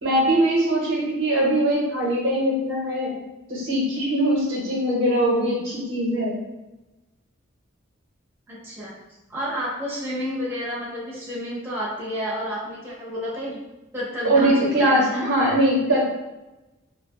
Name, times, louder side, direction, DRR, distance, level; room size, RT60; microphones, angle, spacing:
voice 1, 0.0-3.1 3.5-6.3 14.2-16.1, right 1 dB, 80° right, -3 dB, 0.9 m, -21 dB
voice 2, 8.5-8.9 9.3-13.6 13.9-15.3, equal, 10° right, -7 dB, 0.6 m, -30 dB
2.4 x 2.1 x 2.9 m, 1.0 s
head